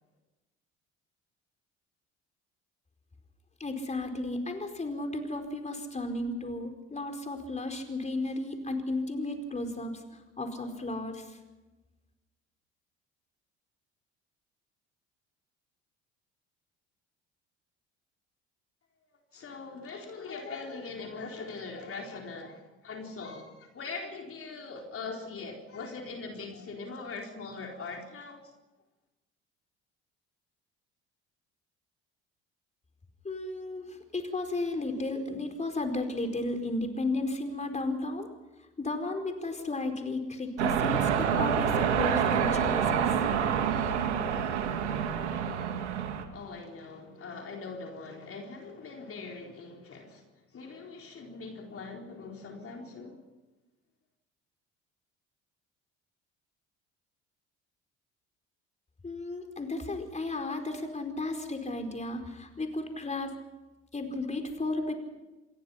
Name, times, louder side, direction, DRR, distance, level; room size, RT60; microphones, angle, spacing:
voice 1, 3.6-9.9 10.4-11.3 33.2-38.3 38.8-43.1 59.0-63.3 63.9-64.9, left 2 dB, 20° left, 4.6 m, -34 dB
voice 2, 19.3-28.5 46.3-50.2 50.5-53.2, left 4 dB, 40° left, 4.2 m, -41 dB
sound 1, 40.6-46.2, right 7 dB, 80° right, 2.2 m, -27 dB
28.0 x 21.0 x 5.8 m
hypercardioid pair, 60°, 34 cm